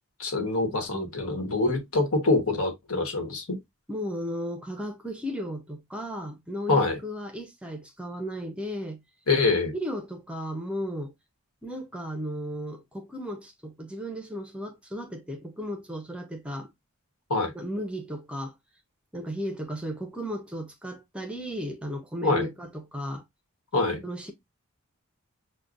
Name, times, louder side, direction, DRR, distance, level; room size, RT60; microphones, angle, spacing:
voice 1, 0.2-3.6 6.7-7.0 9.3-9.7 17.3-17.5 22.2-22.5 23.7-24.0, left 3 dB, 85° left, 1.2 m, -25 dB
voice 2, 3.9-9.0 9.7-11.1 11.6-16.7 17.5-18.5 19.1-23.2 24.0-24.3, equal, 5° right, 0.5 m, -35 dB
6.5 x 2.2 x 2.5 m
head